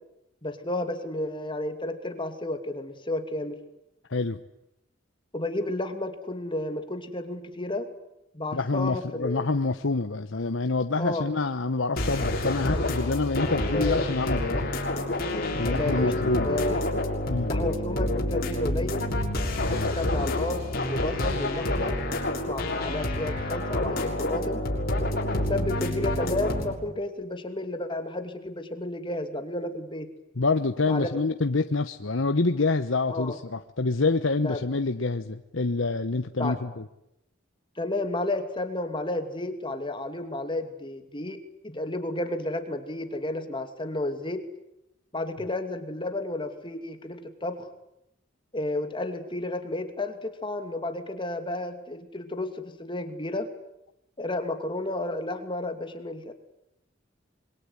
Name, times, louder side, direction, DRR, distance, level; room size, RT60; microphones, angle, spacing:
voice 1, 0.4-3.6 5.3-7.9 8.3-9.5 11.0-11.3 12.7-12.9 13.7-14.0 15.6-16.1 16.4-16.8 17.5-19.1 19.7-22.0 22.4-24.6 25.3-30.1 30.9-31.1 33.1-33.4 34.4-34.6 36.4-36.6 37.8-44.4 45.1-47.7 48.5-53.5 54.2-56.3, left 2 dB, 25° left, 7 dB, 2.7 m, -32 dB
voice 2, 8.5-14.7 15.1-15.2 15.5-16.5 17.3-17.5 19.6-19.9 30.4-36.8, left 3 dB, 75° left, 8 dB, 1.1 m, -27 dB
sound 1, 12.0-26.7, left 1 dB, 55° left, 6.6 m, -28 dB
26.0 x 23.0 x 9.8 m, 0.84 s
head